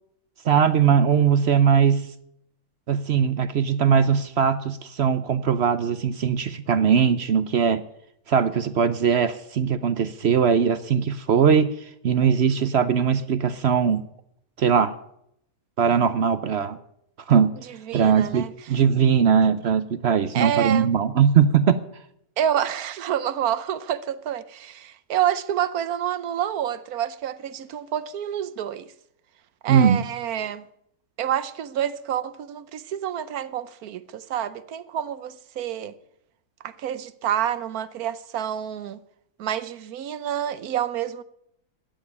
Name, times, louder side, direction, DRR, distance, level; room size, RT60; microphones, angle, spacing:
voice 1, 0.4-2.1 2.9-7.8 8.3-11.7 12.0-14.0 14.6-14.9 15.8-16.8 17.3-17.5 17.9-21.8 29.7-30.0, right 7 dB, 55° right, 0.8 m, -20 dB
voice 2, 17.7-18.5 20.3-20.9 22.4-28.9 29.6-30.7 31.2-35.9 36.6-39.0 39.4-41.2, right 10 dB, 80° right, 1.3 m, -28 dB
12.5 x 9.2 x 9.9 m
omnidirectional pair, 1.6 m